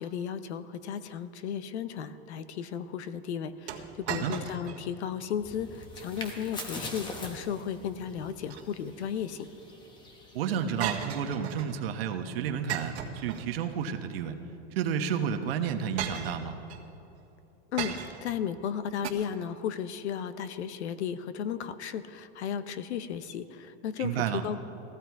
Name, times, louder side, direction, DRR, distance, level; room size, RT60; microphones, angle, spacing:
voice 1, 0.0-9.5 17.7-17.9 18.2-24.6, left 8 dB, 85° left, 13 dB, 0.9 m, -34 dB
sound 1, 3.7-4.9 5.2-5.3 5.9-6.3 8.2-9.1 10.8-11.8 12.7-13.9 15.0-15.1 16.0-16.8 17.8-18.4 19.0-19.1, right 9 dB, 90° right, 1.7 m, -37 dB
sound 2, 5.3-11.1, left 2 dB, 15° left, 1.0 m, -43 dB
voice 2, 10.3-12.9 13.2-14.3 14.7-16.6 24.0-24.4, right 8 dB, 60° right, 7 dB, 1.1 m, -31 dB
15.5 x 14.5 x 4.7 m, 2.8 s
supercardioid pair, 165°, 33 cm